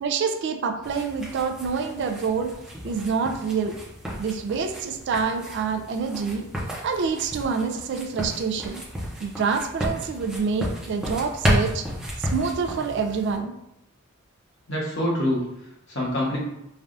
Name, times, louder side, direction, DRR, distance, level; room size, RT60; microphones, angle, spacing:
voice 1, 0.0-2.5 2.8-3.8 4.2-6.5 6.8-8.8 9.2-11.9 12.2-13.6, right 5 dB, 55° right, 6 dB, 0.3 m, -27 dB
sound 1, 0.8-13.4, equal, 5° right, 0.6 m, -32 dB
voice 2, 14.7-16.4, left 1 dB, 60° left, -5 dB, 1.0 m, -26 dB
3.2 x 2.3 x 2.5 m, 0.85 s
head